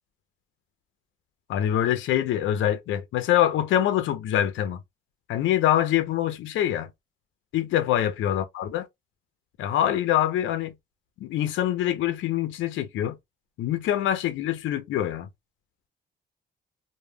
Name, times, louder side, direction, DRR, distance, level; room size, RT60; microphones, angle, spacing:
voice 1, 1.5-4.8 5.3-6.9 7.5-8.9 9.6-10.7 11.2-13.2 13.6-15.3, left 11 dB, 75° left, 0.5 m, -24 dB
2.1 x 2.1 x 3.1 m
cardioid pair, 90°, 20 cm